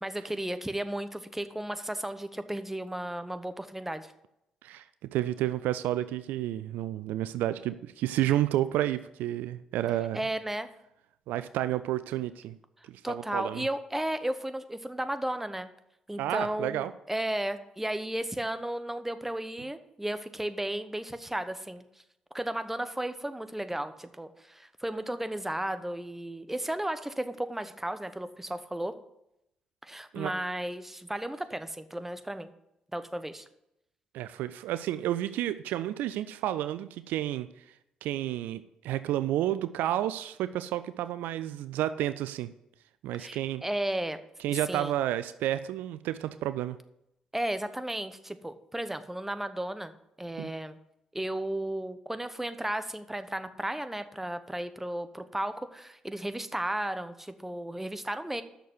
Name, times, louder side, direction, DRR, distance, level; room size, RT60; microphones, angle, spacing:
voice 1, 0.0-4.1 10.1-10.7 13.0-15.7 16.1-21.8 22.3-28.9 29.8-32.5 32.9-33.5 43.2-44.2 44.5-45.0 47.3-50.8 51.1-58.4, right 1 dB, 10° right, 10 dB, 1.0 m, -34 dB
voice 2, 5.1-10.2 11.3-12.6 12.9-13.7 16.2-16.9 30.1-30.3 34.1-37.7 38.0-42.5 43.0-43.6 44.4-46.8 50.4-50.5, right 13 dB, 75° right, 14 dB, 0.4 m, -31 dB
8.0 x 6.5 x 8.0 m, 0.82 s
hypercardioid pair, 45°, 3 cm